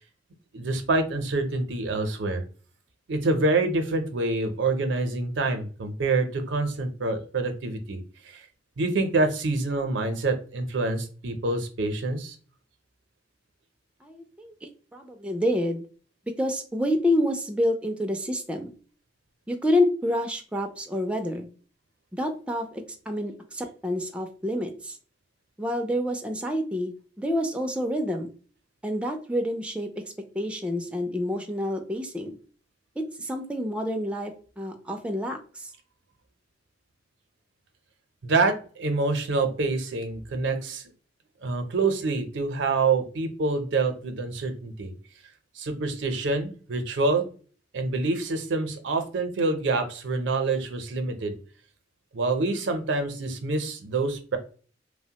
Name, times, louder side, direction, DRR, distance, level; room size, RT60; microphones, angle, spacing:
voice 1, 0.5-2.4 3.1-8.0 8.3-8.4 8.8-12.4 38.2-40.8 41.4-44.9 45.6-47.3 47.7-51.3 52.1-54.4, right 3 dB, 85° right, 7 dB, 0.5 m, -26 dB
voice 2, 14.0-15.8 16.4-18.7 19.5-21.5 22.1-25.0 25.6-28.3 28.8-29.9 30.3-32.4 33.0-35.7, left 1 dB, 5° right, 4 dB, 0.3 m, -28 dB
3.0 x 2.1 x 2.7 m, 0.40 s
head